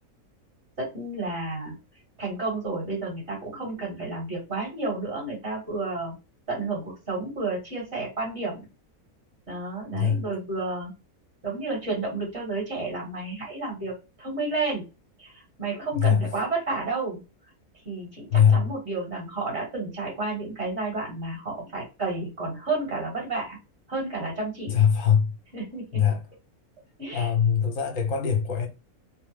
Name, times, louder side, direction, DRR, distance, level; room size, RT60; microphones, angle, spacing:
voice 1, 0.8-1.7 2.2-6.1 6.5-8.7 9.5-10.9 11.4-13.9 14.2-14.8 15.2-17.2 17.9-23.6 23.9-24.8 25.5-26.0 27.0-27.3, right 3 dB, 45° right, 1.9 m, -31 dB
voice 2, 9.9-10.2 15.9-16.2 18.3-18.6 24.7-25.3 25.9-26.2 27.1-28.7, left 8 dB, 65° left, 1.2 m, -21 dB
3.3 x 2.0 x 3.3 m
omnidirectional pair, 1.6 m